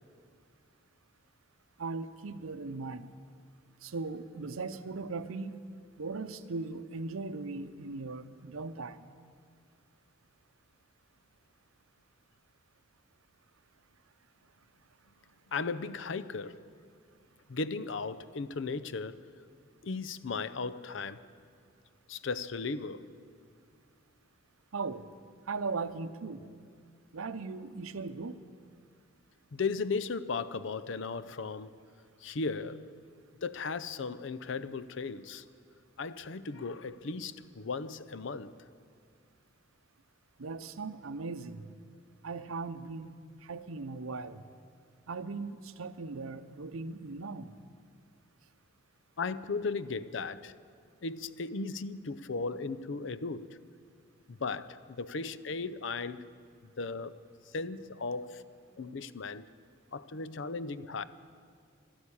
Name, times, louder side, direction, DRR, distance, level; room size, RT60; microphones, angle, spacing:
voice 1, 1.8-3.1 3.8-5.6 6.0-9.1 24.7-25.0 25.5-26.5 27.1-28.4 40.4-41.7 42.2-43.1 43.4-44.4 45.1-47.5, right 3 dB, 90° right, 0.7 m, -38 dB
voice 2, 15.5-16.7 17.5-19.2 19.8-21.3 22.1-23.1 29.5-31.7 32.2-32.9 33.4-35.4 36.0-38.6 49.2-50.5 51.0-53.6 54.3-56.3 56.6-57.3 57.5-58.4 58.8-59.5 59.9-61.0, left 4 dB, 60° left, 0.5 m, -36 dB
13.0 x 12.0 x 8.7 m
head